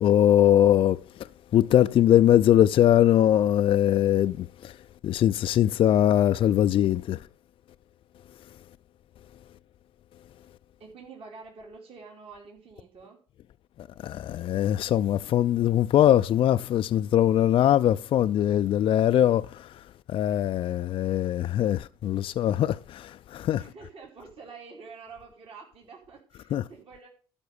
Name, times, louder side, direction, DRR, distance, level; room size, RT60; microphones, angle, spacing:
voice 1, 0.0-1.0 1.5-4.7 5.0-7.2 14.0-19.7 20.1-23.6 26.5-26.6, left 11 dB, 45° left, 0.4 m, -21 dB
voice 2, 10.8-13.2 23.6-27.1, right 4 dB, 50° right, 3.0 m, -47 dB
12.5 x 5.3 x 6.8 m
hypercardioid pair, 60°, 12 cm